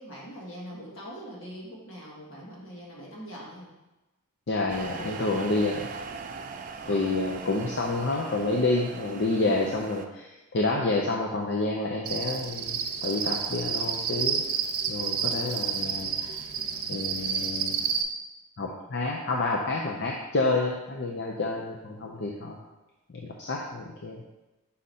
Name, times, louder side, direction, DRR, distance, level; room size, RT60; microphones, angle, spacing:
voice 1, 0.0-3.7 4.5-4.7 6.8-7.1, equal, 75° left, -5 dB, 2.0 m, -42 dB
voice 2, 4.5-5.9 6.9-14.4 14.9-16.3 16.9-17.8 18.6-22.6 23.4-24.2, left 2 dB, 55° left, -1 dB, 0.6 m, -29 dB
sound 1, 4.7-10.1, right 5 dB, 40° right, 0.4 m, -40 dB
Cricket, 12.1-18.0, right 7 dB, 85° right, 0.6 m, -30 dB
5.6 x 5.0 x 4.2 m, 1.0 s
head